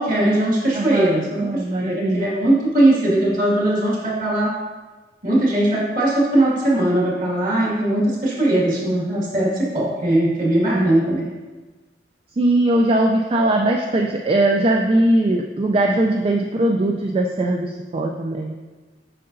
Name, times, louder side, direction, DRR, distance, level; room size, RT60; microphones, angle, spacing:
voice 1, 0.0-4.5 5.2-11.3, right 1 dB, 50° right, -5 dB, 1.9 m, -19 dB
voice 2, 0.7-2.3 10.7-10.9 12.4-18.5, right 1 dB, 35° right, 2 dB, 0.4 m, -20 dB
7.5 x 5.5 x 2.6 m, 1.3 s
head